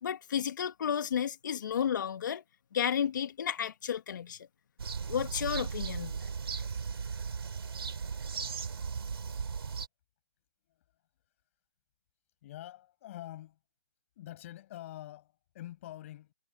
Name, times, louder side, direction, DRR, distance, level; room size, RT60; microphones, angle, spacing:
voice 1, 0.0-2.4 2.7-4.5 5.1-6.2, left 8 dB, 50° left, 2.4 m, -32 dB
sound 1, 4.8-9.9, right 5 dB, 70° right, 3.5 m, -37 dB
voice 2, 12.4-13.6 14.2-16.3, left 14 dB, 30° left, 7.0 m, -46 dB
hypercardioid pair, 160°, 13 cm